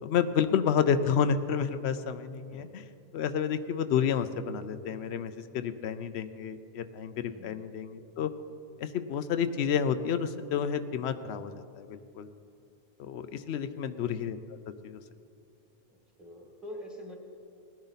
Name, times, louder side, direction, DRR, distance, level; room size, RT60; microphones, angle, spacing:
voice 1, 0.0-2.8 3.1-8.3 8.8-12.3 13.0-14.6 14.8-15.0, left 7 dB, 90° left, 10 dB, 0.9 m, -30 dB
voice 2, 2.5-2.9 7.3-7.7 13.1-13.8 15.9-17.1, left 1 dB, ahead, 0 dB, 1.9 m, -47 dB
19.0 x 10.5 x 4.1 m, 2.5 s
omnidirectional pair, 1.1 m